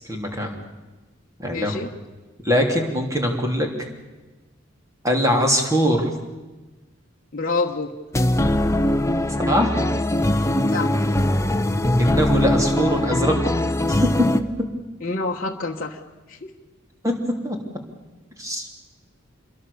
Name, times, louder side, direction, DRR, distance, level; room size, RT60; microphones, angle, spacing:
voice 1, 0.1-0.6 1.4-1.8 2.4-3.7 5.0-6.1 9.5-9.7 12.0-13.5 13.9-14.1 17.0-17.1 17.4-17.6 18.4-18.6, equal, 15° right, 2 dB, 3.2 m, -22 dB
voice 2, 1.5-1.9 7.3-7.9 10.7-10.9 15.0-16.0 16.3-16.5, left 3 dB, 40° left, -1 dB, 1.3 m, -27 dB
sound 1, 8.1-14.4, left 1 dB, 15° left, 0.8 m, -21 dB
27.0 x 22.5 x 7.0 m, 1.2 s
head